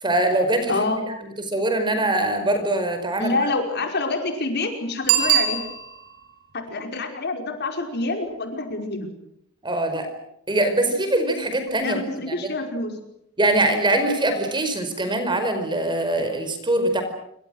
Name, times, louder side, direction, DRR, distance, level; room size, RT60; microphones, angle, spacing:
voice 1, 0.0-0.8 1.5-3.3 9.6-10.1 10.5-12.0 12.3-12.5 13.4-17.0, right 1 dB, 20° right, 8 dB, 5.0 m, -22 dB
voice 2, 0.7-1.1 3.2-5.6 6.5-9.1 11.8-13.0 15.0-15.2, left 2 dB, 50° left, 4 dB, 5.1 m, -27 dB
Bicycle bell, 5.0-6.2 11.7-11.8, right 9 dB, 90° right, 7.6 m, -21 dB
27.5 x 25.0 x 6.4 m, 0.78 s
head